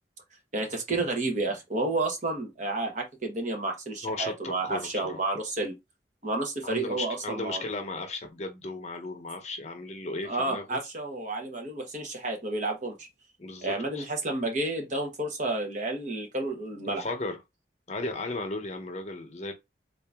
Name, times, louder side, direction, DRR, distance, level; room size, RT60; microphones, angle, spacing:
voice 1, 0.5-5.7 6.2-7.6 10.2-13.1 13.6-17.1, right 2 dB, 45° right, 1.0 m, -31 dB
voice 2, 4.0-5.2 6.6-10.8 13.4-14.1 16.9-17.4 17.9-19.5, left 2 dB, 40° left, 0.7 m, -35 dB
3.8 x 2.5 x 3.4 m
head